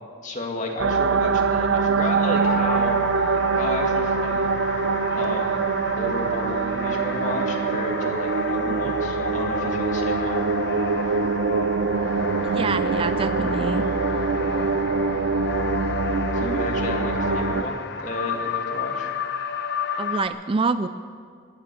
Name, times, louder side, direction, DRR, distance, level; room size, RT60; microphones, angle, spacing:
voice 1, 0.2-3.0 3.5-4.5 5.1-5.6 6.0-10.4 16.3-19.1, left 2 dB, 35° left, 0 dB, 2.2 m, -32 dB
sound 1, 0.8-17.6, right 4 dB, 65° right, 0.6 m, -24 dB
sound 2, 2.4-20.3, left 6 dB, 55° left, 0.8 m, -32 dB
voice 2, 12.5-13.9 20.0-20.9, right 4 dB, 25° right, 12 dB, 0.3 m, -26 dB
21.5 x 8.9 x 6.9 m, 2.2 s
head